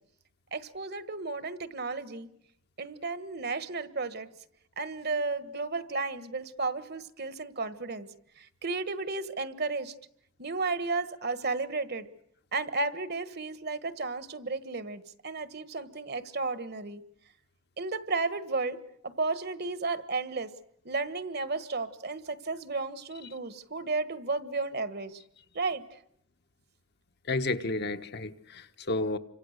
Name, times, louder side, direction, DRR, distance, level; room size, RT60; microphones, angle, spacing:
voice 1, 0.5-2.3 2.8-4.3 4.8-8.1 8.4-9.9 10.4-12.1 12.5-17.0 17.8-18.8 19.0-20.5 20.8-25.2 25.5-26.0, right 3 dB, 50° right, 13 dB, 1.5 m, -33 dB
voice 2, 27.3-29.2, left 2 dB, 50° left, 8 dB, 1.2 m, -31 dB
29.5 x 25.5 x 6.6 m, 0.72 s
head